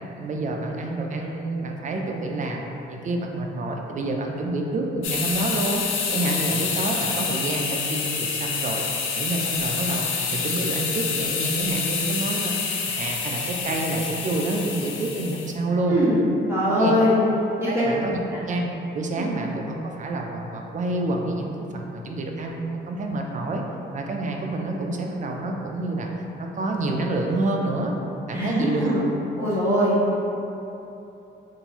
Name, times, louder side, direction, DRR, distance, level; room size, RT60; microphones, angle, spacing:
voice 1, 0.1-5.8 6.1-8.8 9.1-10.1 10.3-12.5 12.8-16.0 16.6-17.0 17.7-18.2 18.5-18.7 18.9-23.6 23.9-26.1 26.4-27.9 28.3-29.0, right 2 dB, 40° right, 1 dB, 0.4 m, -28 dB
sound 1, 5.0-15.5, left 5 dB, 85° left, 0.5 m, -27 dB
voice 2, 15.9-16.2 16.5-17.2 17.6-17.9 18.3-18.4 19.1-19.3 28.3-29.0 29.4-30.0, equal, 15° right, -10 dB, 1.3 m, -22 dB
3.7 x 2.5 x 2.9 m, 2.9 s
cardioid pair, 90°, 20 cm